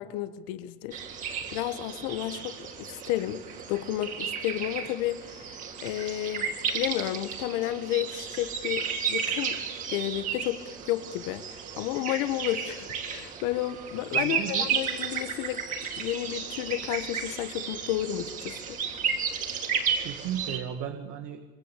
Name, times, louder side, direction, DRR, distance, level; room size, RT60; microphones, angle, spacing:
voice 1, 0.0-3.4 3.7-9.6 9.9-10.6 10.9-15.6 16.0-18.8, left 14 dB, 80° left, 11 dB, 1.5 m, -32 dB
sound 1, 0.9-20.6, right 6 dB, 40° right, 3.6 m, -33 dB
voice 2, 14.1-14.7 20.0-21.4, right 9 dB, 75° right, 6 dB, 2.3 m, -35 dB
25.5 x 24.5 x 8.4 m, 1.2 s
cardioid pair, 145°, 20 cm